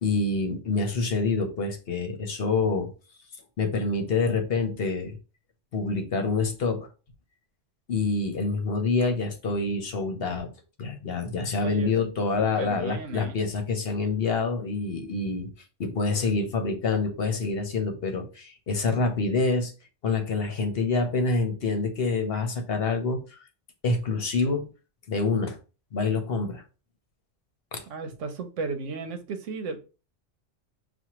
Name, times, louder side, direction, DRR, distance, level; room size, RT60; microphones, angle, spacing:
voice 1, 0.0-2.9 3.6-5.2 5.7-6.9 7.9-10.5 10.8-15.5 15.8-19.7 20.0-23.4 23.8-24.7 25.1-25.6 25.9-26.6 27.7-27.8, left 3 dB, 55° left, 1.0 m, -26 dB
voice 2, 12.4-13.4 27.9-29.8, right 4 dB, 85° right, 1.0 m, -34 dB
6.0 x 2.4 x 2.9 m
omnidirectional pair, 1.3 m